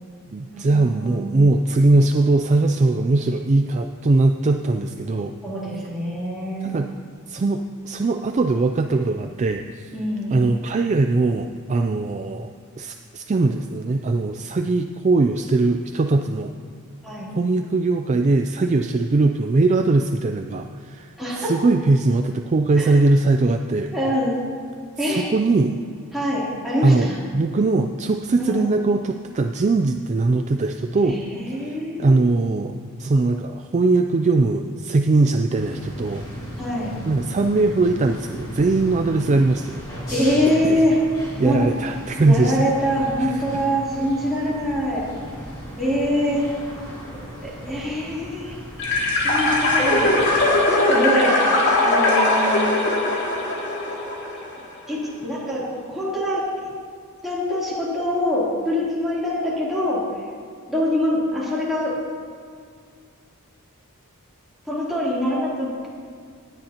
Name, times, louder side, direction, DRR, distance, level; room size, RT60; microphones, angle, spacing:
voice 1, 0.3-5.3 6.6-6.9 7.3-9.9 10.3-16.5 17.4-23.9 25.1-25.8 26.8-31.2 31.6-32.7 33.0-36.5 37.1-39.8 40.7-40.8 41.4-42.6, right 3 dB, 30° right, 5 dB, 0.3 m, -20 dB
voice 2, 0.9-1.3 5.4-6.8 9.9-10.4 17.0-17.3 21.2-21.5 22.8-23.0 23.9-24.4 25.0-25.3 26.1-27.2 28.4-28.6 31.0-32.2 36.6-36.9 40.1-41.0 41.4-41.6 42.2-45.0 45.8-46.5 47.4-48.6 49.2-50.1 50.7-51.4 51.8-52.7 54.9-55.6 55.9-56.7 57.2-60.0 60.7-61.9 64.6-65.9, equal, ahead, -9 dB, 3.2 m, -24 dB
sound 1, 35.5-50.5, equal, 20° left, 2.3 m, -36 dB
sound 2, 48.8-54.5, left 2 dB, 55° left, 2.5 m, -20 dB
18.5 x 10.5 x 2.9 m, 2.2 s
head